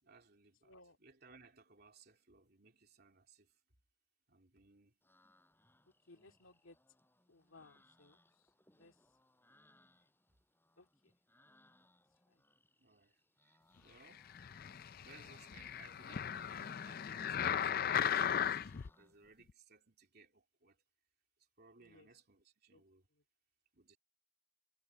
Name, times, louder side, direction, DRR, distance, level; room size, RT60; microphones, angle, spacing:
voice 1, 0.0-3.6 4.3-5.0 12.8-14.3 15.0-20.8 21.6-23.1 23.7-24.0, right 4 dB, 50° right, 3.2 m, -63 dB
voice 2, 0.6-1.0 6.1-6.8 7.3-8.2 8.7-8.9 10.8-11.1 12.3-12.4 21.8-22.1 22.7-22.8, left 2 dB, 70° left, 2.3 m, -62 dB
sound 1, 5.0-19.3, left 1 dB, 10° left, 6.4 m, -71 dB
sound 2, 14.3-18.9 19.5-19.6, left 8 dB, 45° left, 0.4 m, -37 dB
head